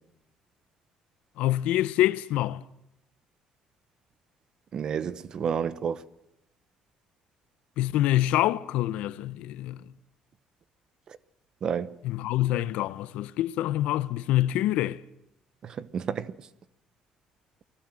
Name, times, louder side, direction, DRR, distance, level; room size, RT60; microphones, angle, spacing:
voice 1, 1.4-2.6 7.8-9.8 12.0-15.0, left 14 dB, 85° left, 0.9 m, -26 dB
voice 2, 4.7-6.0 11.6-11.9 15.6-16.3, right 7 dB, 35° right, 0.9 m, -30 dB
29.5 x 20.5 x 7.7 m
cardioid pair, 175°, 2 cm